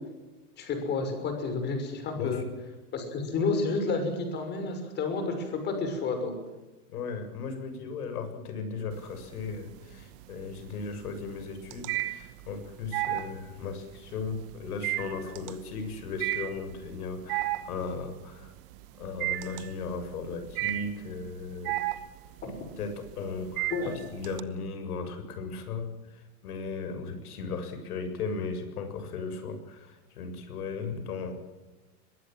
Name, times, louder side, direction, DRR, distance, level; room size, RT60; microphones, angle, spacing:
voice 1, 0.6-2.4 2.9-6.3 22.4-22.5 23.7-24.0, left 3 dB, 20° left, 6 dB, 6.1 m, -30 dB
voice 2, 2.1-2.5 6.9-18.5 19.0-21.8 22.8-31.3, left 4 dB, 70° left, 8 dB, 7.4 m, -36 dB
sound 1, 8.9-9.6 9.9-24.4, right 17 dB, 35° right, 1.1 m, -33 dB
23.5 x 22.0 x 7.6 m, 1.1 s
supercardioid pair, 165°, 46 cm